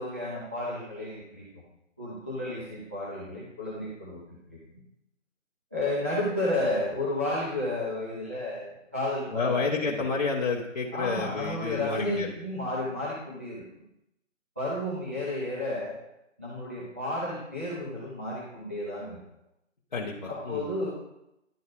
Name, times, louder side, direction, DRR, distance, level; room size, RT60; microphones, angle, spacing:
voice 1, 0.0-1.6 2.0-4.2 4.5-4.6 5.7-10.0 10.9-13.6 14.6-16.0 16.4-19.2 20.3-20.9, left 1 dB, 10° right, -8 dB, 0.6 m, -32 dB
voice 2, 9.3-12.3 19.9-20.7, left 4 dB, 35° left, -5 dB, 0.8 m, -30 dB
11.0 x 4.1 x 4.9 m, 0.85 s
figure-of-eight pair, 155°, 39 cm